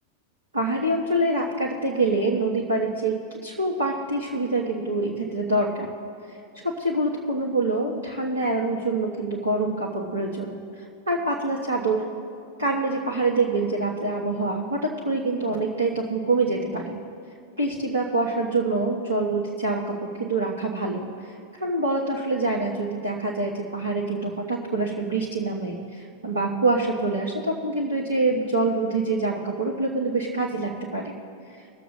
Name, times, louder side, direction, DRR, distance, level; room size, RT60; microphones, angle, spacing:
voice 1, 0.5-5.9 6.3-6.4 6.6-12.0 12.6-17.0 17.6-31.0, right 2 dB, 75° right, -2 dB, 1.2 m, -26 dB
21.0 x 7.2 x 3.7 m, 2.5 s
figure-of-eight pair, 90°, 0 cm